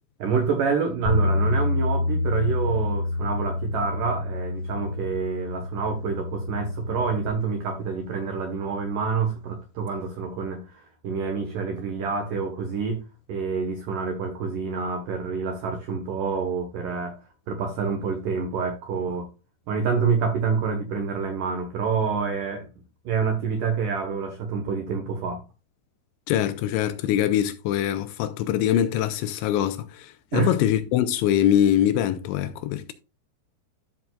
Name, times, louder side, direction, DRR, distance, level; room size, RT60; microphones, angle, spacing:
voice 1, 0.2-13.0 13.3-17.1 17.5-19.3 19.7-22.7 23.1-25.4 30.3-30.5, right 5 dB, 90° right, 1.8 m, -27 dB
Bass guitar, 1.1-7.3, left 2 dB, 60° left, 4.9 m, -27 dB
voice 2, 26.3-32.9, left 11 dB, 80° left, 2.8 m, -23 dB
13.0 x 6.0 x 2.3 m
omnidirectional pair, 5.6 m